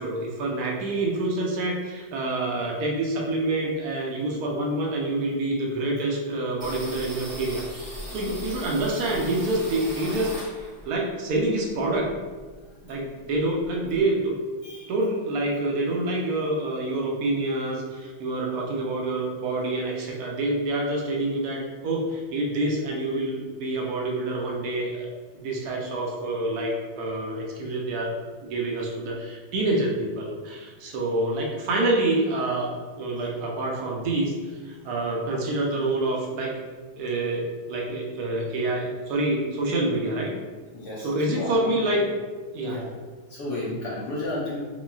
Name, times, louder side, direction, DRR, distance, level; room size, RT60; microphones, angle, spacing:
voice 1, 0.0-7.7 8.1-12.1 12.8-14.4 14.9-25.1 25.3-28.2 28.4-36.5 37.0-40.3 41.0-42.0 42.5-42.8, right 2 dB, 80° right, -2 dB, 0.8 m, -27 dB
sound 1, 6.6-10.9 11.3-12.7 12.9-13.0 13.3-14.0, equal, 30° right, 0.3 m, -38 dB
voice 2, 40.7-41.8 42.6-42.9 43.3-44.6, left 2 dB, 60° left, -5 dB, 1.1 m, -33 dB
4.0 x 3.9 x 2.3 m, 1.4 s
omnidirectional pair, 2.3 m